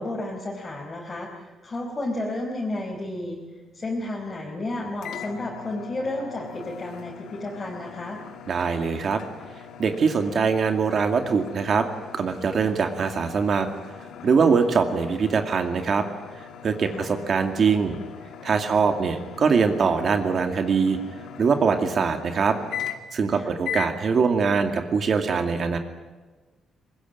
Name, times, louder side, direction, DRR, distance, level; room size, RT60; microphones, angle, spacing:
voice 1, 0.0-3.4 3.7-8.2 16.9-17.1 23.3-23.5, left 1 dB, 25° left, -2 dB, 4.8 m, -32 dB
sound 1, 5.0-23.2 23.6-24.0, left 8 dB, 80° left, 2.6 m, -40 dB
voice 2, 8.5-9.2 9.8-11.9 12.1-13.7 14.2-16.1 16.4-18.0 18.4-21.0 21.4-22.6 23.1-25.8, right 5 dB, 45° right, 6 dB, 2.3 m, -22 dB
24.0 x 21.5 x 9.4 m, 1.3 s
cardioid pair, 145°, 0 cm